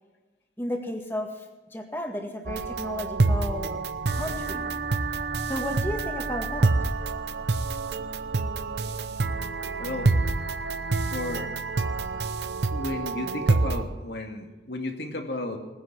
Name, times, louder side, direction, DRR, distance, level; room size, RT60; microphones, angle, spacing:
voice 1, 0.6-1.4 1.7-3.8 4.1-4.7 5.4-6.7, left 1 dB, 15° left, 3 dB, 1.8 m, -33 dB
sound 1, 2.5-13.8, right 3 dB, 70° right, 0.8 m, -27 dB
voice 2, 9.8-10.1 10.9-11.5 12.7-15.6, left 2 dB, 70° left, 3 dB, 2.2 m, -33 dB
19.0 x 9.8 x 6.1 m, 1.2 s
head